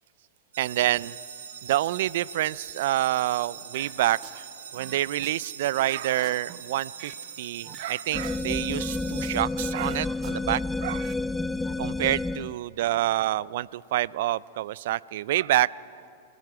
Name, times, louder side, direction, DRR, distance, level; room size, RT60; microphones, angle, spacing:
sound 1, 0.5-9.4, right 7 dB, 90° right, 2.6 m, -42 dB
voice 1, 0.6-1.2 1.6-4.4 4.7-7.1 7.4-11.1 11.8-15.7, right 14 dB, 70° right, 22 dB, 0.4 m, -27 dB
sound 2, 3.7-4.4 4.7-7.3 7.6-9.5 9.7-11.2 11.5-11.7, right 10 dB, 35° right, 1.1 m, -48 dB
sound 3, 8.1-12.6, left 2 dB, 5° left, 0.4 m, -30 dB
29.0 x 18.5 x 4.8 m, 2.6 s
hypercardioid pair, 120°, 0 cm